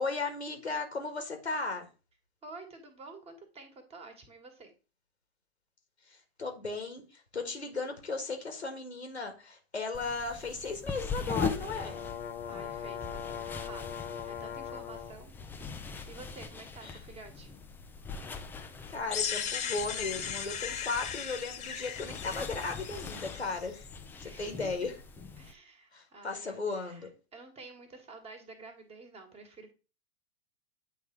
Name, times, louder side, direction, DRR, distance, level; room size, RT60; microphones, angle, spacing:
voice 1, 0.0-1.9 6.4-12.0 16.8-17.0 18.9-23.9 24.2-24.9 25.9-27.1, left 3 dB, 85° left, 1.6 m, -36 dB
voice 2, 2.4-4.7 12.4-17.5 24.2-24.7 25.4-29.7, right 3 dB, 20° right, 1.5 m, -50 dB
sound 1, 9.9-25.5, left 5 dB, 5° left, 0.4 m, -41 dB
sound 2, 11.3-15.2, left 8 dB, 60° left, 1.2 m, -41 dB
sound 3, 19.1-24.0, left 8 dB, 20° left, 0.9 m, -37 dB
8.4 x 3.3 x 4.6 m
figure-of-eight pair, 100°, 32 cm